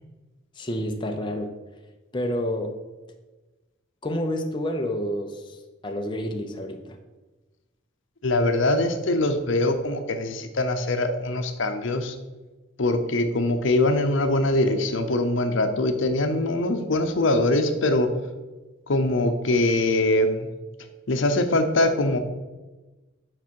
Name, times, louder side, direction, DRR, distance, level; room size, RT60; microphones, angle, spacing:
voice 1, 0.6-1.5 2.1-2.7 4.0-7.0, equal, 25° left, 3 dB, 0.7 m, -29 dB
voice 2, 8.2-12.2 12.8-18.1 18.9-20.5 21.1-22.2, left 2 dB, 70° left, 7 dB, 0.8 m, -23 dB
9.9 x 5.4 x 4.6 m, 1.2 s
head